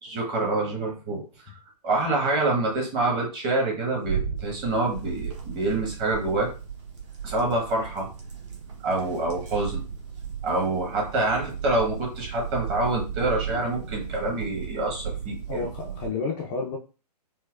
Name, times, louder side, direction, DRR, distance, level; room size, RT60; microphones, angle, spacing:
voice 1, 0.0-1.2 1.8-6.5 7.2-8.1 8.8-9.8 10.4-15.7, right 2 dB, 25° right, -1 dB, 1.2 m, -26 dB
sound 1, 4.0-4.5 4.9-5.5 6.0-6.7 7.2-7.6 8.3-8.6 9.3-9.7 10.6-10.7, right 7 dB, 80° right, 1.2 m, -33 dB
sound 2, 4.4-16.1, right 7 dB, 45° right, 1.0 m, -37 dB
voice 2, 15.5-16.8, left 4 dB, 20° left, -1 dB, 0.4 m, -30 dB
4.4 x 2.1 x 2.3 m, 0.33 s
figure-of-eight pair, 130°, 21 cm